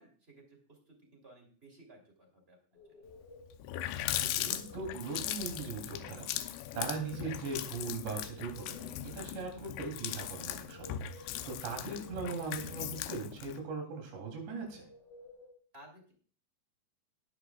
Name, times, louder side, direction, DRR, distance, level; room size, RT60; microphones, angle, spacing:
voice 1, 0.0-3.0 15.7-16.1, right 1 dB, 15° right, 2 dB, 2.6 m, -58 dB
sound 1, 2.8-3.6 4.1-5.0 6.5-7.5 7.9-9.0 10.4-11.5 11.9-12.9 14.5-15.5, left 1 dB, 65° left, 4.2 m, -55 dB
Water tap faucet, 3.2-3.3 3.5-13.6, left 12 dB, 85° left, 2.9 m, -39 dB
voice 2, 4.3-14.8, right 4 dB, 90° right, 2 dB, 5.4 m, -40 dB
18.5 x 10.0 x 2.3 m, 0.43 s
omnidirectional pair, 4.9 m